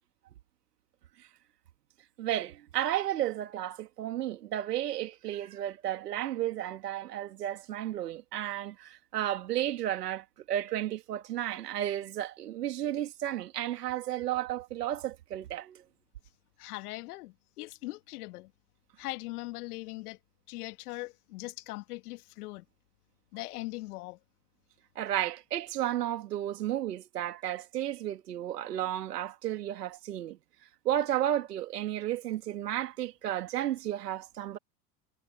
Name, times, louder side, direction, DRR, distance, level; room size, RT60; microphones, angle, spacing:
voice 1, 2.2-15.8 25.0-30.4 30.8-34.6, right 12 dB, 80° right, 2.7 m, -33 dB
voice 2, 16.6-18.5 19.0-20.2 20.5-22.6 23.3-24.2, left 20 dB, 70° left, 2.0 m, -40 dB
hypercardioid pair, 90°, 47 cm